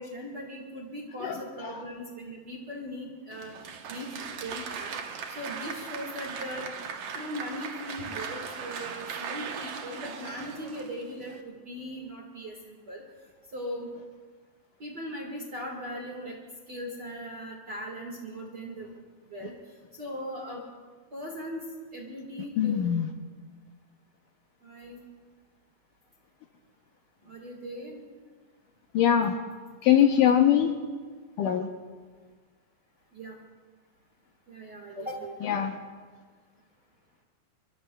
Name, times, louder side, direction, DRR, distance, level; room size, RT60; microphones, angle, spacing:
voice 1, 0.0-3.5 3.9-5.0 5.3-6.7 7.1-13.0 13.5-13.9 14.8-16.4 16.7-18.9 19.3-19.5 20.0-20.6 21.1-21.6 21.9-22.9 24.6-25.0 27.2-28.0 33.1-33.3 34.5-35.3, equal, 40° right, -1 dB, 1.5 m, -39 dB
voice 2, 1.2-1.8 22.6-23.1 28.9-29.4 29.8-30.7 31.4-31.7 35.4-35.8, left 9 dB, 75° left, 4 dB, 2.2 m, -23 dB
Applause, 3.3-11.4, right 6 dB, 90° right, 1.3 m, -38 dB
23.5 x 23.5 x 2.3 m, 1.5 s
omnidirectional pair, 4.4 m